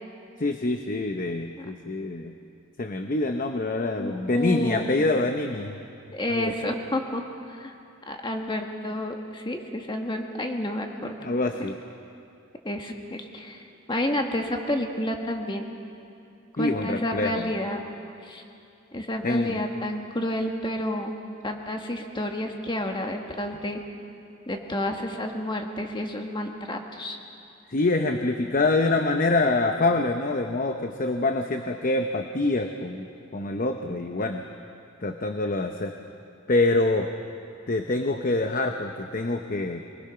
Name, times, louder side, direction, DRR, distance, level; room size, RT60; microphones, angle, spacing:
voice 1, 0.4-2.3 2.8-5.8 6.3-6.5 11.2-11.7 16.6-17.5 19.2-19.6 27.7-33.1 33.3-34.4 35.0-35.9 36.5-37.1 37.7-39.8, left 2 dB, 45° left, 5 dB, 0.8 m, -25 dB
voice 2, 4.0-4.9 6.1-7.2 7.5-7.7 8.1-11.1 12.6-13.6 13.9-15.7 16.6-17.8 18.2-18.4 18.9-21.1 21.4-23.8 24.5-27.2, left 1 dB, 25° left, 3 dB, 1.6 m, -30 dB
24.5 x 19.5 x 5.8 m, 2.6 s
head